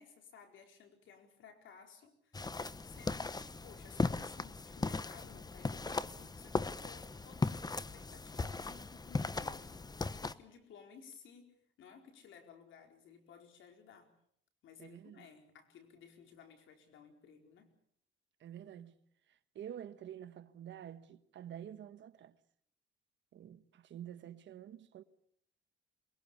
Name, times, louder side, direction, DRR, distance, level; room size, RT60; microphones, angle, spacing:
voice 1, 0.0-2.5 2.8-14.1 14.6-17.7, left 6 dB, 75° left, 4.6 m, -57 dB
sound 1, 2.3-10.3, left 3 dB, 20° left, 1.0 m, -38 dB
voice 2, 14.8-15.3 18.4-19.0 19.3-22.4 23.3-25.0, right 10 dB, 65° right, 1.3 m, -49 dB
23.0 x 21.5 x 7.0 m
cardioid pair, 90°, 20 cm